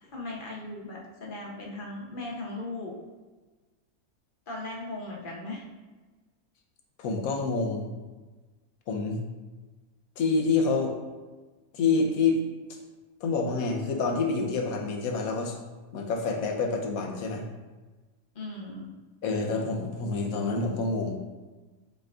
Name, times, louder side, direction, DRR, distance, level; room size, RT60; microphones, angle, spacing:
voice 1, 0.0-2.9 4.5-5.6 18.3-18.9, left 2 dB, 45° left, -2 dB, 0.8 m, -38 dB
voice 2, 7.0-7.9 8.9-9.2 10.2-10.9 11.7-12.4 12.7-12.8 13.2-15.6 15.9-17.4 19.2-21.2, left 4 dB, 70° left, 2 dB, 1.1 m, -27 dB
5.5 x 3.7 x 2.4 m, 1.3 s
omnidirectional pair, 1.6 m